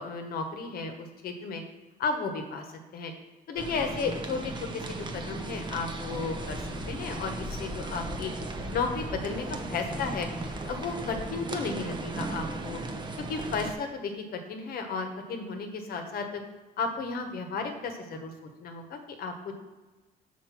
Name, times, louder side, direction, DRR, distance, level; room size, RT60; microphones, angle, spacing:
voice 1, 0.0-1.6 2.0-2.6 2.9-3.1 3.5-6.6 6.9-8.3 8.7-10.3 10.7-12.8 13.2-16.4 16.8-18.3 18.6-19.5, left 4 dB, 60° left, 5 dB, 1.1 m, -33 dB
sound 1, 3.6-13.7, right 2 dB, 25° right, 0.8 m, -37 dB
Insect / Thunder / Rain, 6.1-11.4, left 2 dB, 10° left, 1.2 m, -43 dB
5.8 x 4.5 x 6.0 m, 1.2 s
cardioid pair, 110°, 17 cm